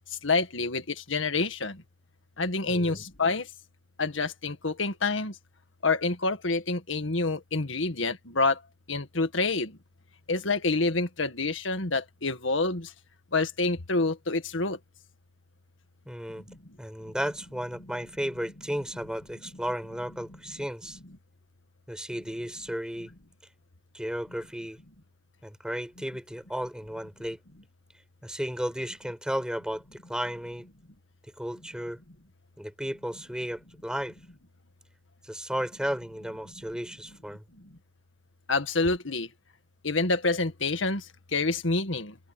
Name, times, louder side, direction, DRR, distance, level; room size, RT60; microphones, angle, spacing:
voice 1, 0.2-1.8 2.4-3.5 4.0-5.4 5.8-8.6 8.9-9.8 10.3-12.9 13.3-14.8 16.5-16.6 17.1-17.2 38.5-39.3 39.8-42.2, left 3 dB, 85° left, 1.9 m, -27 dB
voice 2, 2.7-3.0 16.0-16.4 16.8-21.0 21.9-23.1 23.9-24.8 25.4-27.4 28.2-30.7 31.4-32.0 32.6-34.2 35.2-37.4, equal, 5° right, 6.7 m, -34 dB
head